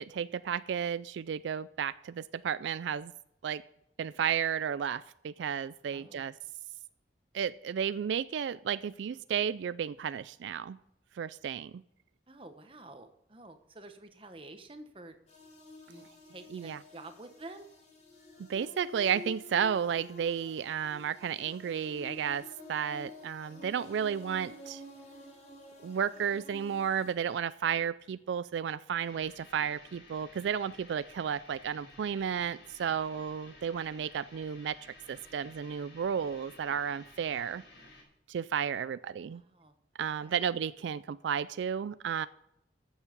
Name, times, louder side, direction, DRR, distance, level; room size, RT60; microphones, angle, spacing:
voice 1, 0.0-3.1 3.4-3.6 4.0-6.3 7.3-10.8 11.2-11.8 16.5-16.8 18.4-22.4 22.7-24.8 25.8-34.8 35.1-37.6 38.3-39.4 40.0-42.3, right 8 dB, 80° right, 16 dB, 0.3 m, -33 dB
voice 2, 5.9-6.3 12.3-15.2 15.9-17.7 39.3-39.8 40.2-40.4, right 2 dB, 30° right, 8 dB, 1.1 m, -49 dB
sound 1, 15.3-27.1, left 2 dB, 40° left, 3.5 m, -49 dB
sound 2, 29.1-38.0, left 2 dB, 90° left, 5.2 m, -55 dB
14.0 x 7.2 x 5.2 m, 0.81 s
head